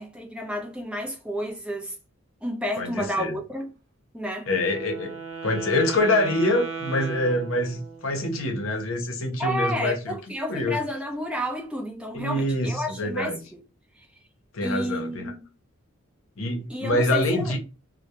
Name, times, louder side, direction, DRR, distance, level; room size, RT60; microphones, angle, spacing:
voice 1, 0.0-1.9 2.4-3.7 4.1-4.5 9.4-13.6 14.6-15.4 16.7-17.6, equal, 5° right, 0.6 m, -31 dB
voice 2, 2.8-3.4 4.5-5.1 5.4-10.2 10.5-10.8 12.1-13.4 14.5-15.3 16.4-17.6, left 1 dB, 85° left, 0.7 m, -25 dB
Wind instrument woodwind instrument, 4.5-8.2, right 5 dB, 80° right, 0.5 m, -36 dB
2.2 x 2.1 x 2.8 m
head